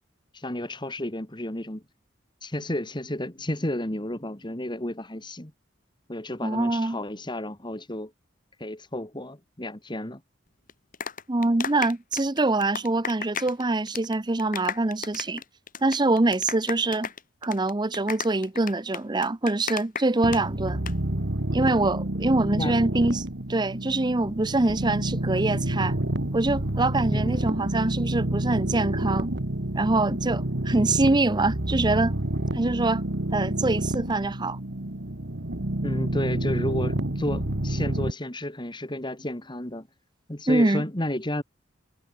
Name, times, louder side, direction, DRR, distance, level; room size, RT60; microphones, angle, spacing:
voice 1, 0.3-1.8 2.4-5.5 6.1-8.1 8.6-10.2 22.6-22.8 27.1-27.5 35.8-39.9 40.3-41.4, left 1 dB, 25° left, 2.5 m, -32 dB
voice 2, 6.4-7.0 11.3-15.4 15.8-17.1 17.4-20.8 21.5-26.0 26.3-29.3 29.7-32.1 32.5-33.0 33.3-34.6 40.5-40.8, right 2 dB, 20° right, 0.7 m, -24 dB
sound 1, 10.7-13.6 13.9-14.1 14.4-20.4 20.7-20.9, left 6 dB, 45° left, 3.6 m, -34 dB
sound 2, 20.2-38.1, right 1 dB, 60° right, 2.0 m, -28 dB
head